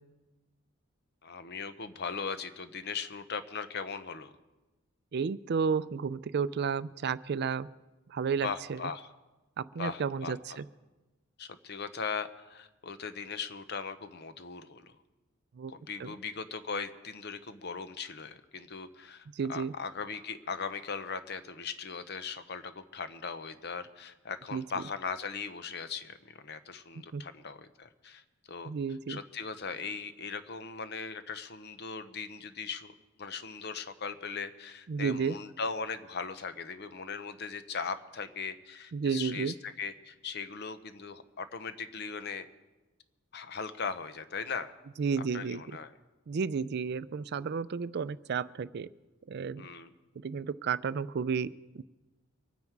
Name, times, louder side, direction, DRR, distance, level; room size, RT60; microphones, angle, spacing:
voice 1, 1.2-4.3 8.4-9.1 9.8-10.6 11.4-15.0 15.7-28.2 28.5-28.7 29.1-42.5 43.3-44.7 45.3-45.9 49.6-49.9, left 5 dB, 55° left, 11 dB, 0.8 m, -39 dB
voice 2, 5.1-7.7 8.1-8.8 9.6-10.6 15.6-15.7 16.0-16.1 19.3-19.7 24.5-24.6 27.1-27.2 28.7-29.2 34.9-35.3 38.9-39.5 45.0-45.6 46.3-48.9 49.3-49.7 50.2-51.8, right 6 dB, 55° right, 16 dB, 0.4 m, -32 dB
24.5 x 9.3 x 4.6 m, 1.1 s
head